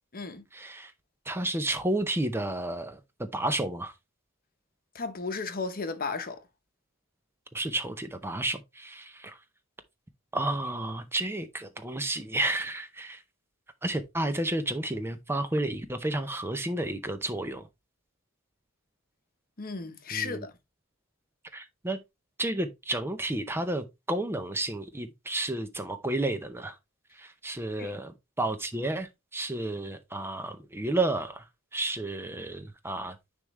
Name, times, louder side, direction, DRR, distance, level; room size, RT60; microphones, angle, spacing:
voice 1, 0.5-0.9 1.3-3.0 3.3-3.9 7.5-9.4 10.3-13.2 13.8-17.7 20.1-20.5 21.5-22.0 22.4-26.8 27.2-28.1 28.4-31.4 31.7-33.2, right 2 dB, 10° right, 0.6 m, -31 dB
voice 2, 4.9-6.4 19.6-20.5 27.8-27.9, left 4 dB, 45° left, 0.9 m, -34 dB
9.7 x 3.5 x 3.0 m
head